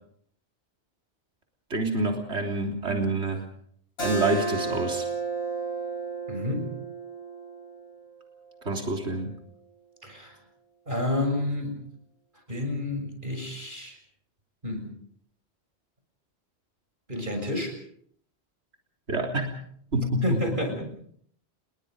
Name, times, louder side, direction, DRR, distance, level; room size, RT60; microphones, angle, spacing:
voice 1, 1.7-3.5 4.0-5.1 8.6-9.3 19.1-19.5 19.9-20.4, right 2 dB, 75° right, 2 dB, 3.9 m, -27 dB
Keyboard (musical), 4.0-9.2, right 4 dB, 70° left, 5.9 m, -33 dB
voice 2, 6.3-6.7 10.0-10.4 10.9-11.8 12.5-14.0 14.6-15.0 17.1-17.7 20.2-20.8, left 1 dB, 45° right, 5 dB, 7.1 m, -30 dB
29.5 x 22.0 x 5.3 m, 0.64 s
omnidirectional pair, 1.1 m